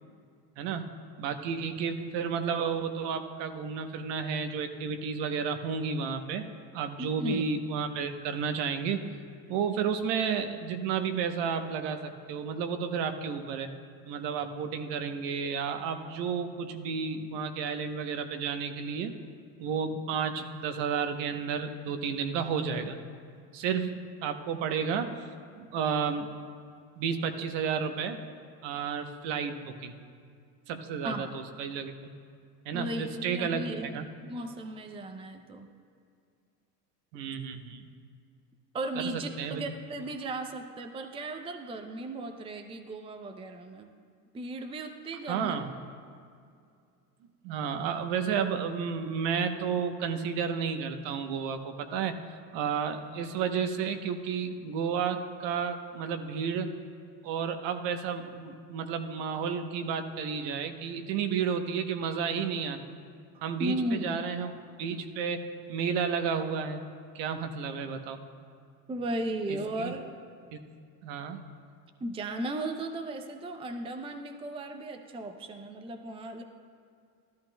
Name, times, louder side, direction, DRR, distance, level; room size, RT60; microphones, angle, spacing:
voice 1, 0.6-0.9 1.2-6.5 6.7-9.1 9.5-13.7 14.0-19.1 19.6-23.0 23.5-25.1 25.6-26.3 27.0-28.2 28.6-29.9 30.7-32.1 32.7-34.1 37.1-37.9 39.0-39.6 45.3-45.7 47.4-52.2 52.5-56.8 57.2-63.0 63.4-64.5 64.8-65.4 65.7-66.8 67.1-68.2 69.5-69.9 70.5-70.6 71.0-71.4, right 6 dB, 60° right, 7 dB, 1.0 m, -32 dB
voice 2, 7.0-7.4 31.0-31.3 32.7-35.7 38.7-43.9 44.3-45.6 63.6-64.2 68.9-70.0 72.0-76.4, right 1 dB, 10° right, 5 dB, 0.5 m, -36 dB
13.5 x 13.0 x 2.3 m, 2.3 s
supercardioid pair, 95°, 49 cm